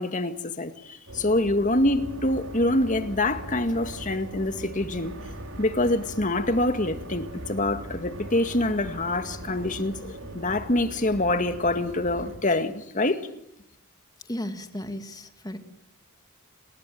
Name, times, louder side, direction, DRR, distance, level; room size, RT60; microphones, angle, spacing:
voice 1, 0.0-5.1 5.6-13.2, left 1 dB, 35° left, 2.0 m, -25 dB
sound 1, 1.1-12.4, right 1 dB, 70° right, 5.5 m, -40 dB
voice 2, 14.2-15.6, equal, 15° left, 2.4 m, -35 dB
29.5 x 20.5 x 9.4 m
head